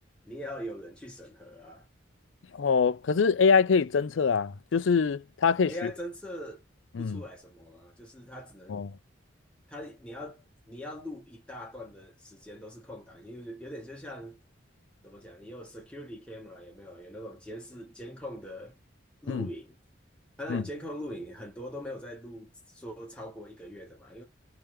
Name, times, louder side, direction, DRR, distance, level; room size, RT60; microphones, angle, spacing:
voice 1, 0.2-1.9 5.7-6.6 7.0-8.9 9.7-14.4 15.0-18.7 19.2-19.8 20.4-24.2, equal, 5° left, 1.4 m, -42 dB
voice 2, 2.6-5.9 7.0-7.2 8.7-8.9 19.3-19.5 20.5-20.6, left 5 dB, 85° left, 0.5 m, -24 dB
3.5 x 2.9 x 3.2 m
head